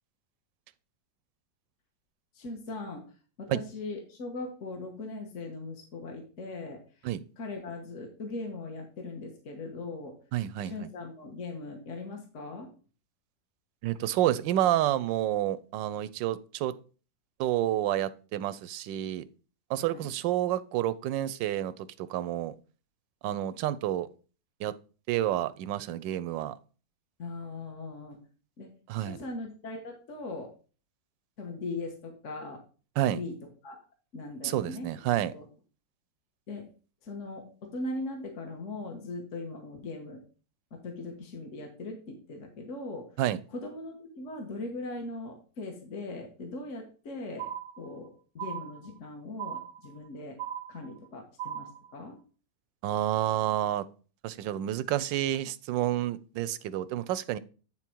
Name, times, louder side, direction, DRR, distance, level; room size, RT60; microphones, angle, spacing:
voice 1, 2.3-6.8 7.4-10.1 10.6-12.7 19.8-20.1 27.2-28.2 28.6-28.7 28.9-30.5 31.4-32.6 33.1-33.3 33.6-33.8 34.1-34.9 35.3-35.4 36.5-36.7 37.0-40.2 40.7-43.1 43.5-47.5 47.8-50.4 50.7-52.2, left 2 dB, 45° left, 2 dB, 1.6 m, -39 dB
voice 2, 10.3-10.9 13.8-16.7 17.4-19.2 19.7-22.5 23.2-24.1 24.6-24.7 25.1-26.5 28.9-29.2 33.0-33.2 34.4-35.3 43.2-43.4 52.8-53.9 54.2-57.4, right 13 dB, 90° right, 16 dB, 1.3 m, -29 dB
sound 1, 47.4-48.1 48.4-49.1 49.4-50.1 50.4-51.1 51.4-52.1, right 10 dB, 65° right, 0.9 m, -38 dB
9.9 x 3.9 x 4.5 m, 0.37 s
omnidirectional pair, 1.9 m